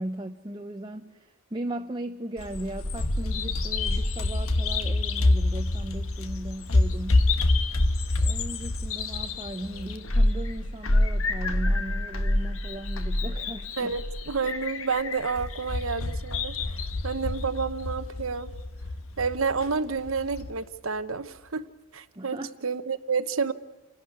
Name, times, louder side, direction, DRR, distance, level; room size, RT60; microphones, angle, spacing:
voice 1, 0.0-7.3 8.2-14.0 22.2-22.5, right 1 dB, 20° right, 5 dB, 0.7 m, -37 dB
Bird vocalization bird call bird song, 2.4-20.5, left 2 dB, 90° left, 1.3 m, -27 dB
voice 2, 13.8-18.5 19.2-21.6 21.9-23.5, right 5 dB, 75° right, 12 dB, 1.1 m, -30 dB
28.5 x 11.5 x 9.5 m, 1.2 s
head